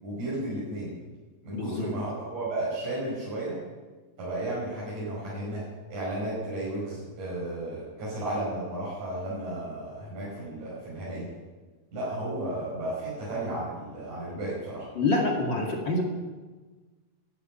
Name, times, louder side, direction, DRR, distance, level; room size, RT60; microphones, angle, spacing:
voice 1, 0.0-0.9 1.4-3.6 4.2-5.6 5.9-11.3 11.9-14.9, right 1 dB, 45° right, -8 dB, 6.7 m, -33 dB
voice 2, 1.5-1.9 15.0-16.0, left 2 dB, 40° left, -1 dB, 1.8 m, -26 dB
12.5 x 11.5 x 9.6 m, 1.3 s
omnidirectional pair, 4.9 m